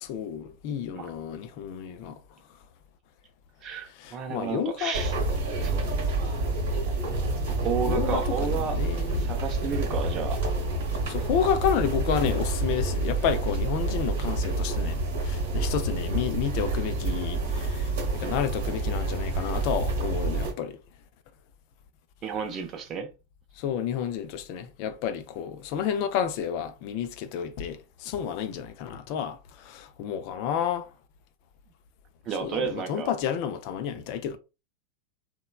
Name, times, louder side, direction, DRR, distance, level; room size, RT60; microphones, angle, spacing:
voice 1, 0.0-2.1 4.0-4.9 7.8-8.2 8.7-9.3 11.1-20.8 23.6-29.4 29.7-30.9 32.4-34.4, left 8 dB, 45° left, 0.4 m, -30 dB
voice 2, 3.6-5.2 5.6-6.1 7.5-8.8 9.2-10.4 22.2-23.1 32.2-33.1, right 6 dB, 30° right, 0.6 m, -32 dB
sound 1, 4.9-20.5, right 2 dB, 55° right, 1.0 m, -28 dB
3.0 x 2.2 x 2.2 m
figure-of-eight pair, 90°, 0 cm